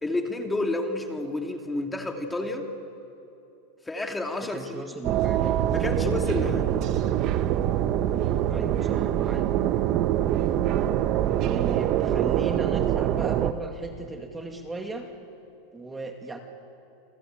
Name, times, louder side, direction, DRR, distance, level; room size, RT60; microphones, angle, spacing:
voice 1, 0.0-2.7 3.9-4.8 5.7-6.6, left 2 dB, 10° left, 4 dB, 2.4 m, -30 dB
voice 2, 4.5-5.6 6.3-6.6 8.4-9.5 11.4-15.1 15.7-16.4, right 2 dB, 10° right, 4 dB, 2.2 m, -36 dB
sound 1, 5.0-13.5, right 11 dB, 45° right, 1.1 m, -24 dB
28.5 x 23.5 x 8.9 m, 3.0 s
supercardioid pair, 130°, 0 cm